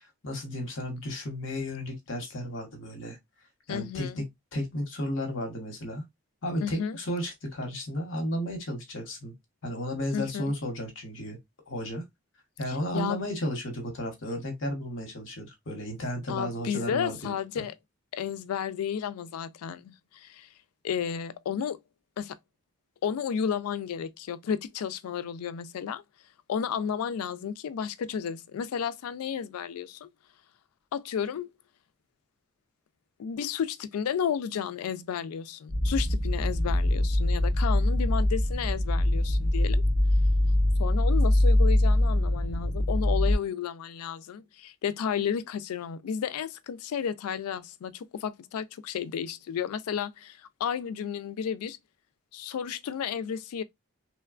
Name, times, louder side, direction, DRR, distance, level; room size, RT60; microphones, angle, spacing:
voice 1, 0.0-3.2 3.7-4.2 4.5-6.0 6.4-9.3 9.6-11.4 11.7-12.0 12.6-17.6, equal, 55° left, 0.9 m, -33 dB
voice 2, 3.7-4.2 6.6-7.0 10.1-10.5 12.7-13.2 16.3-17.7 18.1-20.5 20.8-21.8 22.2-22.4 23.0-26.0 26.5-30.1 30.9-31.5 33.2-39.8 40.8-51.8 52.3-53.6, left 7 dB, 85° left, 0.3 m, -32 dB
sound 1, 35.7-43.4, left 1 dB, 40° right, 0.8 m, -23 dB
3.0 x 2.2 x 2.3 m
head